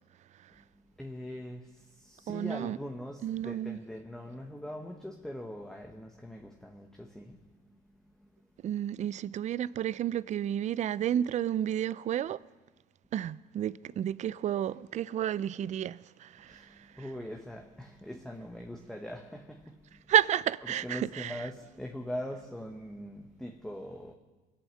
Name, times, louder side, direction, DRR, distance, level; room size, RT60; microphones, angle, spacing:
voice 1, 0.5-8.5 16.4-20.0 20.8-24.1, equal, 5° left, 1.1 m, -42 dB
voice 2, 2.3-2.8 3.2-3.8 8.6-12.4 13.1-17.1 20.1-21.5, right 11 dB, 45° right, 0.4 m, -31 dB
23.5 x 8.7 x 6.4 m
cardioid pair, 110°, 17 cm